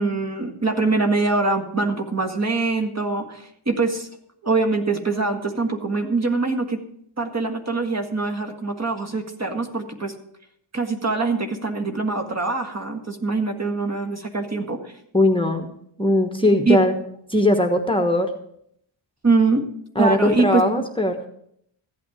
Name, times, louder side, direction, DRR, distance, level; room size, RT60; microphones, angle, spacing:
voice 1, 0.0-4.1 4.4-6.8 7.2-10.1 10.7-14.9 16.7-16.8 19.2-19.6 20.0-20.6, right 3 dB, 30° right, 5 dB, 1.8 m, -23 dB
voice 2, 15.1-15.7 16.0-16.9 17.3-18.3 20.0-21.2, left 1 dB, 10° left, 3 dB, 1.2 m, -19 dB
15.0 x 8.5 x 5.0 m, 0.70 s
cardioid pair, 75°, 49 cm